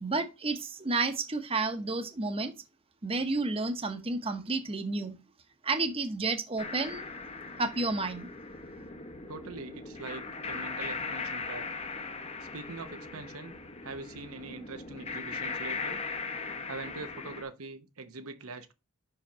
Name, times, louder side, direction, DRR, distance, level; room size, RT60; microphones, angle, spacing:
voice 1, 0.0-2.5 3.0-5.1 5.6-7.1 7.6-8.3, right 3 dB, 25° right, 0.9 m, -31 dB
sound 1, 6.6-17.4, left 4 dB, 30° left, 0.8 m, -39 dB
voice 2, 9.3-11.7 12.5-13.5 13.8-16.0 16.7-18.7, right 3 dB, 70° right, 0.9 m, -43 dB
5.8 x 5.0 x 5.6 m
head